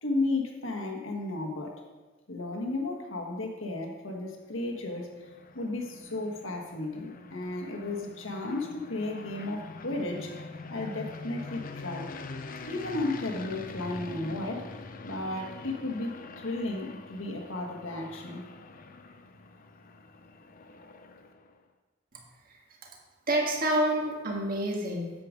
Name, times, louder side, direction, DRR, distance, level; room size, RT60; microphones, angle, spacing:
voice 1, 0.0-1.8 2.3-5.3 5.5-12.1 12.7-18.4, left 2 dB, 70° left, 1 dB, 1.4 m, -34 dB
sound 1, 4.4-21.6, left 3 dB, 45° left, 0.6 m, -45 dB
voice 2, 23.3-25.2, right 1 dB, 45° right, -1 dB, 1.6 m, -28 dB
8.6 x 7.7 x 5.1 m, 1.3 s
head